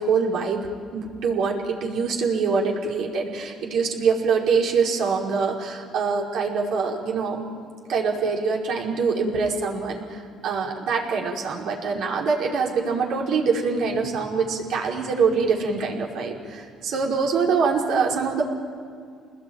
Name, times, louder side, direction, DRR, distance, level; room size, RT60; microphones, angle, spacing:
voice 1, 0.0-7.4 7.9-18.4, right 5 dB, 70° right, -1 dB, 5.3 m, -24 dB
27.5 x 20.0 x 9.1 m, 2.2 s
cardioid pair, 105°, 0 cm